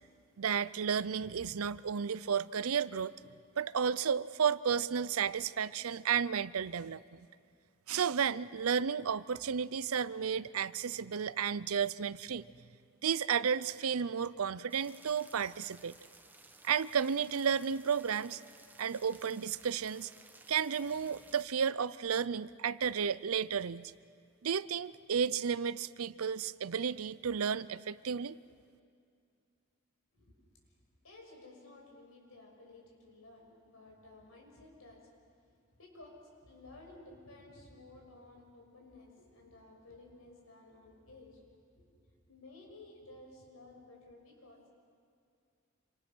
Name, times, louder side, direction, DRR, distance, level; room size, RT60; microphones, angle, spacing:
voice 1, 0.4-3.1 3.6-7.3 7.9-12.4 13.0-16.0 16.6-18.4 18.8-20.1 20.5-23.9 24.4-28.4, right 7 dB, 90° right, 18 dB, 0.6 m, -32 dB
sound 1, 14.7-21.4, right 3 dB, 10° right, 1.0 m, -58 dB
voice 2, 31.0-35.1 35.4-36.2 36.4-41.5 41.8-41.9 42.3-44.7, left 2 dB, 90° left, 0 dB, 6.4 m, -55 dB
27.0 x 27.0 x 6.2 m, 2.3 s
head